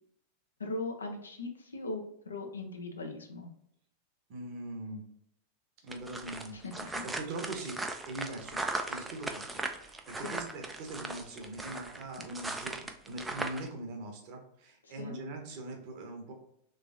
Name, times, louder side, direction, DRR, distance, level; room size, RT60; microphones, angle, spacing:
voice 1, 0.6-3.5 6.5-7.0 10.2-10.4 12.3-12.4 14.8-15.1, left 2 dB, 75° left, 3 dB, 0.6 m, -39 dB
voice 2, 4.3-5.1 5.8-6.6 7.0-8.6 8.9-16.3, right 2 dB, 45° right, 2 dB, 0.9 m, -42 dB
sound 1, 5.9-13.7, right 2 dB, 10° right, 0.4 m, -38 dB
3.4 x 3.2 x 2.6 m, 0.75 s
figure-of-eight pair, 90°, 0 cm